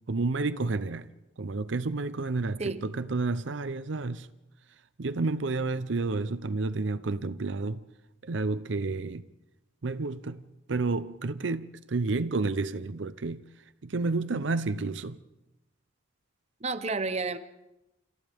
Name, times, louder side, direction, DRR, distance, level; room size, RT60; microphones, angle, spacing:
voice 1, 0.1-1.1 1.4-4.3 5.0-7.8 8.2-9.2 9.8-10.4 10.7-13.4 13.8-15.2, right 3 dB, 65° right, 0.6 m, -30 dB
voice 2, 16.6-17.4, right 3 dB, 35° right, 0.8 m, -30 dB
28.5 x 27.0 x 3.6 m
head